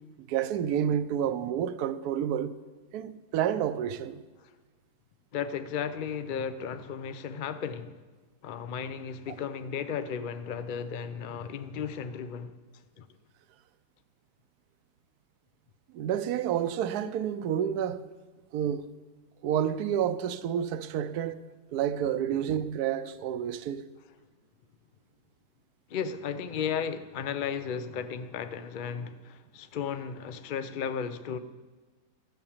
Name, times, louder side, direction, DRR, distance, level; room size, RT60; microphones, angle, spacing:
voice 1, 0.2-2.5 2.9-4.2 15.9-18.0 18.5-18.9 19.4-21.4 21.7-23.8, right 9 dB, 70° right, 1.1 m, -29 dB
voice 2, 5.3-8.0 8.4-12.5 13.0-13.1 25.9-31.4, left 7 dB, 85° left, 0.4 m, -34 dB
13.5 x 7.8 x 7.2 m
omnidirectional pair, 1.8 m